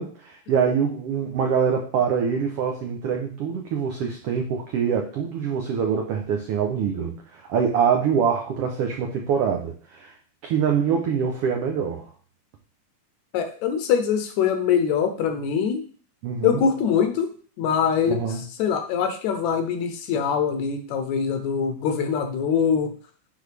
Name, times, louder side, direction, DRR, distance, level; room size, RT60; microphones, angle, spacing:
voice 1, 0.0-10.1 10.4-12.1 16.2-16.6 18.1-18.4, right 7 dB, 85° right, 2 dB, 1.3 m, -24 dB
voice 2, 13.3-15.8 16.4-17.3 17.6-18.2 18.6-22.9, left 7 dB, 75° left, 7 dB, 1.9 m, -23 dB
9.5 x 3.9 x 3.3 m, 0.43 s
omnidirectional pair, 3.6 m